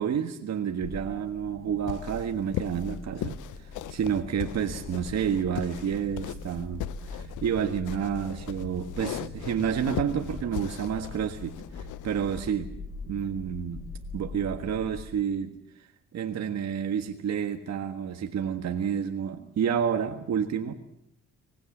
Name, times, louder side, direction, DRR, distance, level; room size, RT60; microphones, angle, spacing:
voice 1, 0.0-12.7 13.1-13.8 14.1-15.5 16.1-20.7, right 8 dB, 60° right, 5 dB, 1.6 m, -30 dB
sound 1, 0.8-15.0, left 3 dB, 30° left, 6.7 m, -42 dB
sound 2, 1.9-12.5, left 14 dB, 80° left, 0.8 m, -39 dB
24.5 x 20.0 x 7.3 m, 0.77 s
cardioid pair, 90°, 30 cm